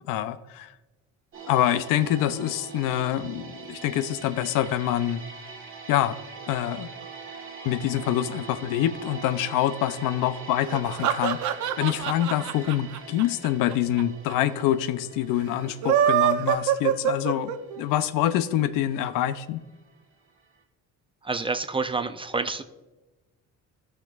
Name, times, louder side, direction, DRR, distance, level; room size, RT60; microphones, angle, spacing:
voice 1, 0.1-0.7 1.5-5.2 5.9-6.2 6.5-6.9 7.6-17.5 17.8-19.6, left 12 dB, 85° left, 14 dB, 0.5 m, -26 dB
sound 1, 1.3-20.2 20.4-20.6, right 5 dB, 40° right, 1.4 m, -43 dB
sound 2, 10.7-14.0 14.3-14.4 14.6-14.7 15.7-17.8, right 10 dB, 65° right, 0.7 m, -24 dB
voice 2, 21.2-22.6, right 4 dB, 15° right, 10 dB, 0.4 m, -28 dB
13.0 x 5.8 x 2.3 m, 1.1 s
cardioid pair, 100°, 32 cm